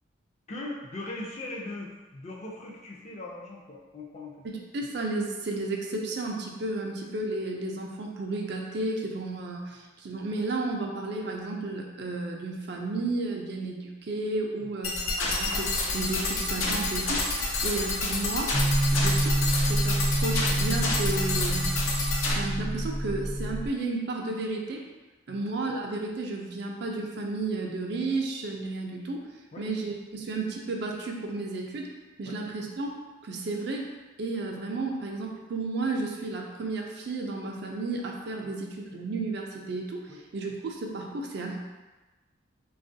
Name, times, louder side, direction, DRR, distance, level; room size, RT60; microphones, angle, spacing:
voice 1, 0.5-4.4 14.6-14.8 25.3-25.4 29.5-29.6 32.2-32.3 40.1-40.2, left 2 dB, 30° left, -3 dB, 0.4 m, -40 dB
voice 2, 4.4-19.4 19.7-21.7 22.3-24.8 25.3-29.2 29.6-31.9 32.2-32.9 33.2-33.9 34.2-41.6, right 2 dB, 50° right, 1 dB, 0.4 m, -33 dB
sound 1, 14.8-22.3, left 2 dB, 85° left, 0.6 m, -29 dB
sound 2, 18.5-23.7, right 1 dB, 70° left, 0.9 m, -27 dB
3.5 x 2.3 x 2.6 m, 1.2 s
head